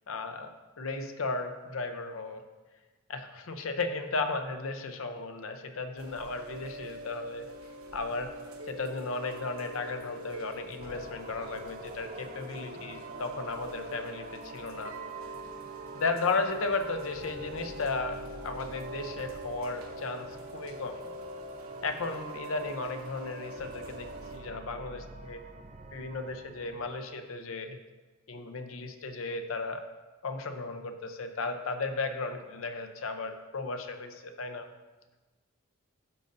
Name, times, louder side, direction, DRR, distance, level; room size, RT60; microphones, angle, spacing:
voice 1, 0.1-0.5 0.8-2.4 3.1-7.5 7.9-8.3 8.7-14.9 15.9-20.3 20.5-21.1 21.8-25.4 25.9-27.8 28.3-29.8 30.2-34.7, left 3 dB, 70° left, 7 dB, 0.7 m, -35 dB
Chime / Rain, 6.0-24.4, right 1 dB, 75° right, 1.0 m, -44 dB
sound 1, 10.8-26.9, right 3 dB, 35° right, 0.4 m, -48 dB
12.0 x 5.3 x 2.6 m, 1.2 s
head